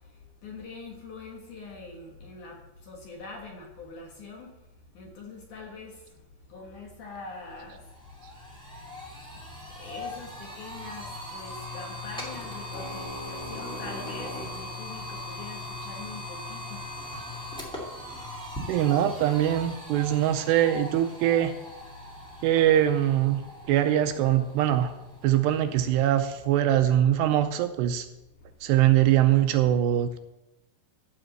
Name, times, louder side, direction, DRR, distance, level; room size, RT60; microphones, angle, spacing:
voice 1, 0.4-2.6 2.8-4.5 4.9-5.9 6.5-7.8 9.8-16.9, left 3 dB, 60° left, 0 dB, 2.4 m, -43 dB
sound 1, 7.6-26.6, left 1 dB, 5° left, 0.7 m, -40 dB
voice 2, 18.7-21.5 22.4-23.4 23.7-24.9 25.2-28.1 28.6-30.2, right 11 dB, 80° right, 9 dB, 2.6 m, -22 dB
14.5 x 5.0 x 7.7 m, 0.93 s
omnidirectional pair, 5.1 m